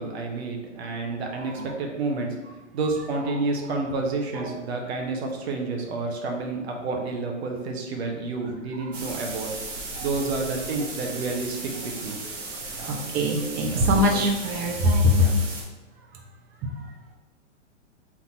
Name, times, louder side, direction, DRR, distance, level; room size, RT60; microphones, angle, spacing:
voice 1, 0.0-2.3 2.7-9.5 10.0-12.2 12.8-12.9 13.8-14.2 15.2-15.3, right 3 dB, 60° right, 1 dB, 0.9 m, -30 dB
sound 1, 8.9-15.6, right 3 dB, 85° right, 1.3 m, -36 dB
voice 2, 12.8-15.3 16.6-16.7, left 1 dB, 25° right, 1 dB, 0.8 m, -22 dB
4.3 x 2.8 x 4.2 m, 1.1 s
hypercardioid pair, 125°, 36 cm